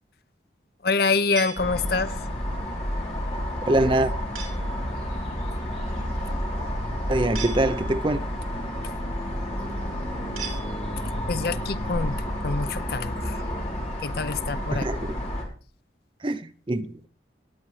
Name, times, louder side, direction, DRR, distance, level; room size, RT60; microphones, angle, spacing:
voice 1, 0.8-2.2 11.3-13.4 14.0-14.9, left 4 dB, 55° left, 0.6 m, -26 dB
sound 1, 1.4-2.3 4.3-4.8 7.3-8.2 10.4-11.2, right 6 dB, 50° right, 3.5 m, -39 dB
sound 2, 1.6-15.4, equal, 35° left, 3.0 m, -30 dB
voice 2, 3.7-4.1 7.1-8.2 14.7-15.1 16.2-17.1, right 1 dB, 30° right, 0.6 m, -24 dB
18.5 x 8.8 x 3.2 m
head